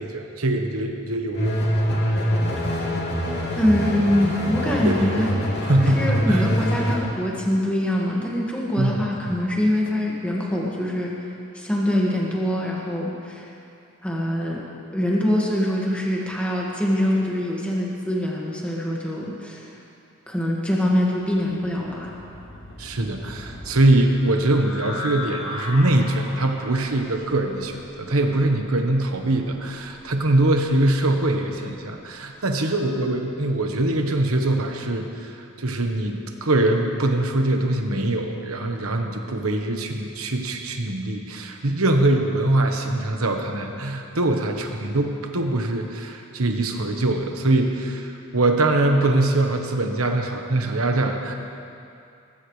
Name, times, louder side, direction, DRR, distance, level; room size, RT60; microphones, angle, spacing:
voice 1, 0.0-1.6 4.8-5.2 5.6-6.5 8.8-9.4 22.8-51.3, right 2 dB, 75° right, 3 dB, 1.2 m, -23 dB
sound 1, 1.3-7.0, equal, 50° left, 2.7 m, -24 dB
voice 2, 3.6-5.4 5.8-11.1 11.5-13.5 14.0-14.6 14.9-19.7 20.3-22.1, left 1 dB, 5° left, -4 dB, 1.8 m, -24 dB
sound 2, 21.1-33.0, left 2 dB, 70° left, 1.8 m, -39 dB
20.0 x 15.5 x 3.3 m, 2.6 s
head